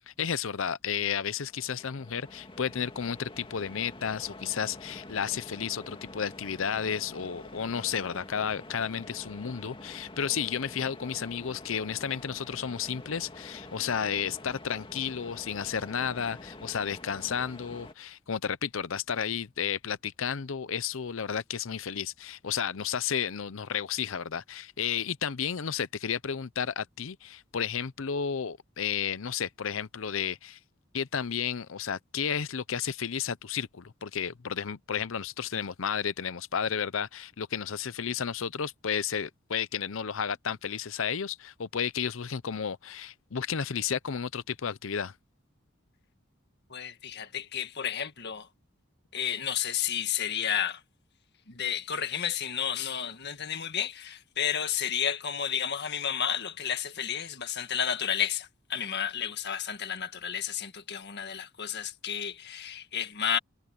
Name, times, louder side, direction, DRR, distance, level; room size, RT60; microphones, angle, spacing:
voice 1, 0.1-30.6 30.9-45.1, left 7 dB, 70° left, 0.7 m, -32 dB
sound 1, 1.3-17.9, left 2 dB, 25° left, 2.2 m, -47 dB
voice 2, 46.7-48.5 49.1-50.8 51.5-63.4, left 8 dB, 55° left, 1.8 m, -31 dB
head